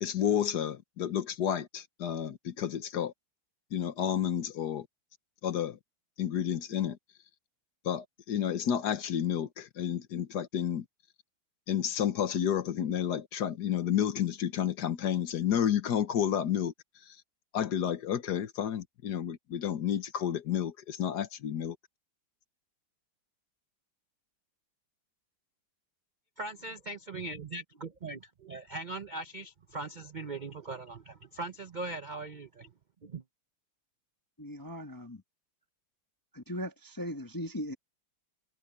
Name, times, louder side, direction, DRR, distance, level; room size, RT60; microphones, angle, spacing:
voice 1, 0.0-3.1 3.7-4.9 5.4-5.8 6.2-7.0 7.8-10.8 11.7-16.7 17.5-21.8, left 9 dB, 60° left, 1.5 m, -31 dB
voice 2, 26.4-32.7 33.1-33.2, right 2 dB, 70° right, 0.4 m, -40 dB
voice 3, 34.4-35.2 36.3-37.7, equal, 15° left, 1.0 m, -38 dB
omnidirectional pair, 2.1 m